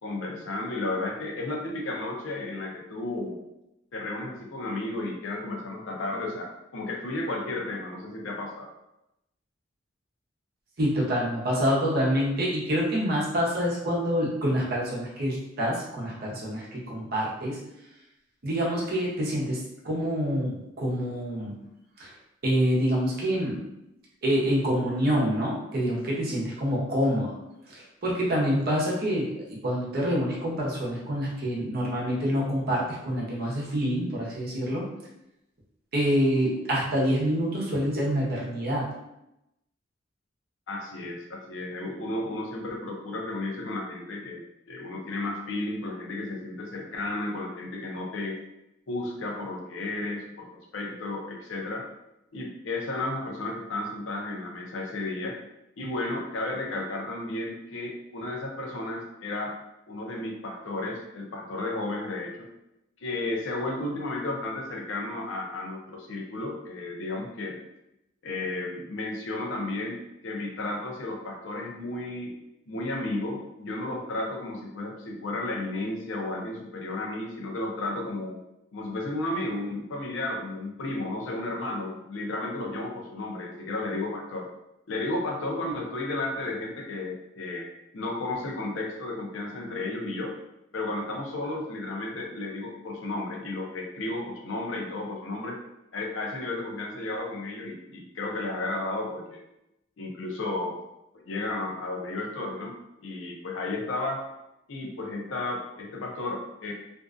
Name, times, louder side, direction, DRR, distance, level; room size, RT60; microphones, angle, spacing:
voice 1, 0.0-3.4 3.9-8.7 40.7-48.4 48.9-51.9 52.3-55.4 55.8-59.6 59.9-62.5 63.0-67.6 68.2-72.4 72.7-78.4 78.7-84.5 84.9-87.7 87.9-90.3 90.7-95.6 95.9-99.4 100.0-100.8 101.1-102.7 103.0-104.2 104.7-106.7, left 2 dB, 75° left, 0 dB, 0.5 m, -33 dB
voice 2, 10.8-17.6 18.4-21.5 22.0-22.1 22.4-23.6 24.2-27.3 27.7-34.8 35.9-38.9, equal, 50° right, -4 dB, 0.7 m, -26 dB
2.5 x 2.2 x 2.4 m, 0.87 s
head